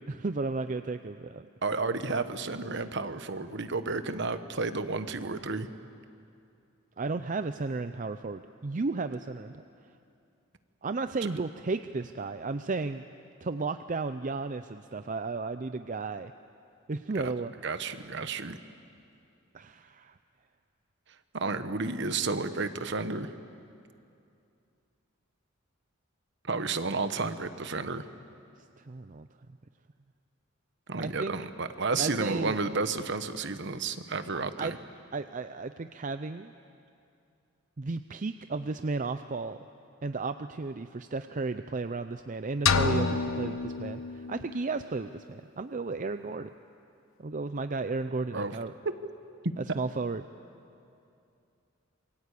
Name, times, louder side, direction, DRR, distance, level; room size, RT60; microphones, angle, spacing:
voice 1, 0.1-1.5 7.0-9.5 10.8-13.0 13.4-16.3 16.9-17.5 19.5-20.1 28.9-29.3 31.0-31.3 32.0-32.6 34.6-34.7 35.1-36.5 37.8-39.6 40.0-46.5 47.2-48.7 49.6-50.2, right 3 dB, 40° right, 10 dB, 0.5 m, -33 dB
voice 2, 1.6-5.7 17.1-17.3 17.6-18.6 21.3-23.3 26.5-28.0 30.9-34.8 48.3-48.6 49.4-49.5, right 3 dB, 60° right, 10 dB, 1.2 m, -31 dB
sound 1, 42.7-44.6, left 5 dB, 85° left, 1.1 m, -28 dB
27.0 x 22.5 x 8.4 m, 2.6 s
head